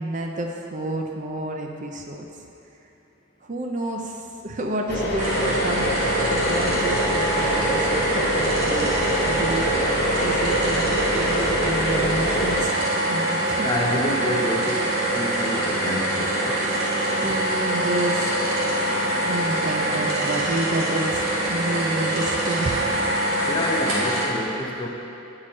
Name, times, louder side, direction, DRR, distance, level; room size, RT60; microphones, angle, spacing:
voice 1, 0.0-2.3 3.4-4.2 4.4-9.0 9.2-12.7 13.1-13.7 16.7-16.8 17.2-18.2 18.5-23.0, right 2 dB, 35° right, 2 dB, 0.5 m, -30 dB
sound 1, 4.9-12.7, equal, 50° left, 0.8 m, -26 dB
sound 2, 5.2-24.3, right 1 dB, 80° right, 1.8 m, -24 dB
voice 2, 13.6-14.9 15.1-16.6 23.5-24.9, left 1 dB, 20° left, 0 dB, 0.5 m, -28 dB
8.7 x 4.8 x 4.2 m, 2.8 s
head